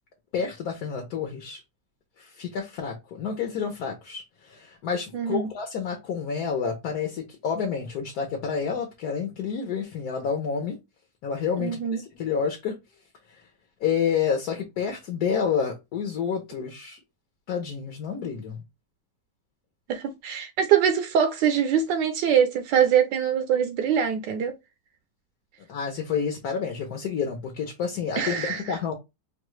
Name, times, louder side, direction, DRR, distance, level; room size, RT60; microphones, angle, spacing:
voice 1, 0.3-1.6 2.2-10.8 11.2-12.7 13.3-13.4 13.8-17.0 17.5-18.6 25.7-28.9, left 6 dB, 65° left, 1.2 m, -29 dB
voice 2, 5.1-5.5 11.6-12.0 19.9-24.6 28.2-28.8, right 8 dB, 80° right, 1.2 m, -23 dB
4.6 x 2.3 x 3.1 m
omnidirectional pair, 1.9 m